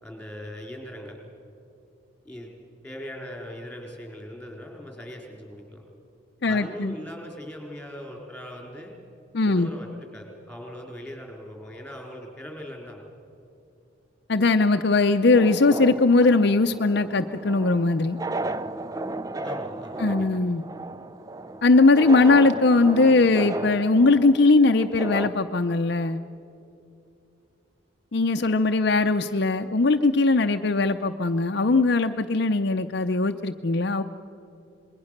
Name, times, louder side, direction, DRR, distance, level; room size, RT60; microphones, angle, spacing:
voice 1, 0.0-1.2 2.2-2.5 2.8-5.8 6.5-8.9 9.4-13.0 19.4-20.3, equal, 5° left, 1 dB, 4.3 m, -40 dB
voice 2, 6.4-6.9 9.3-9.7 14.3-18.2 20.0-20.6 21.6-26.2 28.1-34.0, left 3 dB, 55° left, 6 dB, 0.6 m, -20 dB
sound 1, 15.3-25.3, right 2 dB, 20° right, 0.5 m, -34 dB
27.0 x 21.5 x 6.7 m, 2.7 s
head